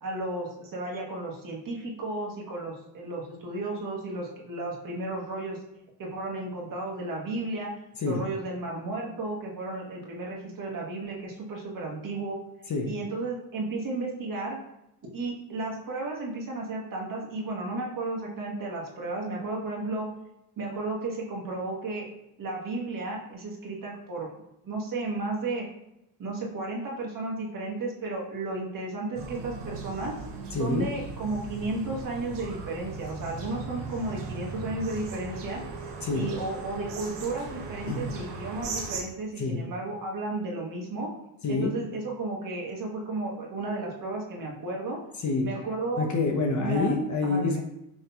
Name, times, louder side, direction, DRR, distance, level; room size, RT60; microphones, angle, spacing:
voice 1, 0.0-5.6 6.0-7.8 8.1-12.4 12.8-14.6 15.0-20.1 20.6-22.1 22.4-24.3 24.6-25.7 26.2-30.2 30.5-35.7 36.1-41.1 41.5-45.0 45.4-46.1 46.6-46.9 47.2-47.6, right 2 dB, 40° right, -3 dB, 1.3 m, -33 dB
sound 1, 29.1-39.0, right 4 dB, 60° right, 1.0 m, -38 dB
voice 2, 30.5-30.9 36.0-36.3 37.9-38.0 39.4-39.6 41.4-41.7 45.2-45.5 46.0-47.6, left 3 dB, 35° left, 2 dB, 0.8 m, -27 dB
5.8 x 2.7 x 2.3 m, 0.85 s
supercardioid pair, 70°, 48 cm